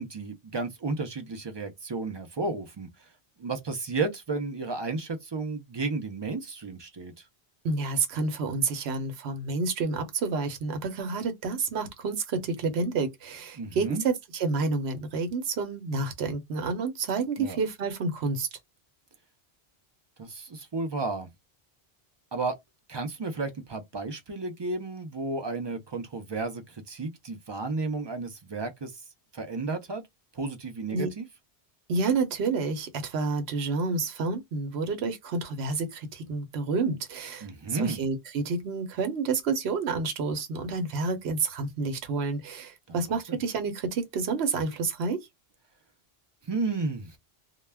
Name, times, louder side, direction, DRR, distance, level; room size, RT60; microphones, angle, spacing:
voice 1, 0.0-3.1 3.4-7.1 13.6-14.0 17.4-17.6 20.2-21.3 22.3-22.6 22.9-29.0 29.3-30.0 30.3-31.3 37.4-38.0 42.9-43.4 46.4-47.2, right 3 dB, 45° right, 0.3 m, -33 dB
voice 2, 7.6-18.5 30.9-31.1 31.9-45.2, right 4 dB, 80° right, 0.9 m, -29 dB
2.2 x 2.1 x 3.2 m
omnidirectional pair, 1.1 m